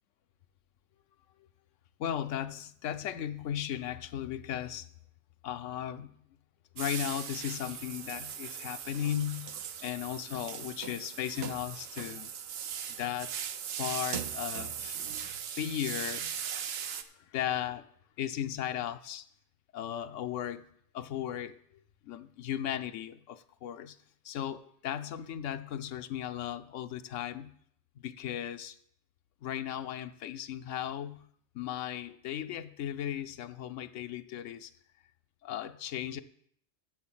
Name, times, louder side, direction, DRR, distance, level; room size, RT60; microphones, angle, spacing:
voice 1, 2.0-4.9 5.4-6.2 6.7-9.5 9.8-12.3 13.0-13.3 13.8-15.0 15.4-16.4 16.9-17.8 18.2-19.3 19.7-20.7 20.9-21.6 22.0-24.0 24.2-27.6 28.0-28.8 29.4-31.3 31.5-34.7 35.4-36.2, left 10 dB, 85° left, 1.0 m, -36 dB
sound 1, 6.8-17.0, right 8 dB, 60° right, 0.8 m, -39 dB
8.0 x 7.0 x 7.4 m
omnidirectional pair, 1.3 m